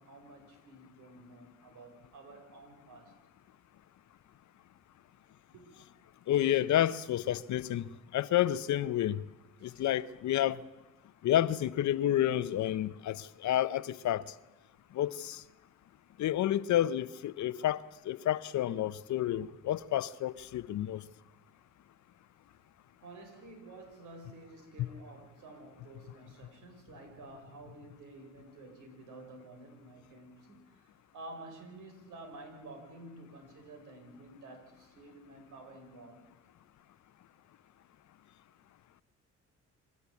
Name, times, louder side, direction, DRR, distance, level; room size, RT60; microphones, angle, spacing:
voice 1, 0.0-3.1 5.5-5.7 9.6-9.9 23.0-36.2, right 2 dB, 85° right, 5.4 m, -51 dB
voice 2, 6.3-9.2 9.6-10.6 11.2-14.2 14.9-15.4 16.2-21.0, left 12 dB, 70° left, 0.8 m, -30 dB
27.5 x 12.5 x 8.4 m
cardioid pair, 90°, 30 cm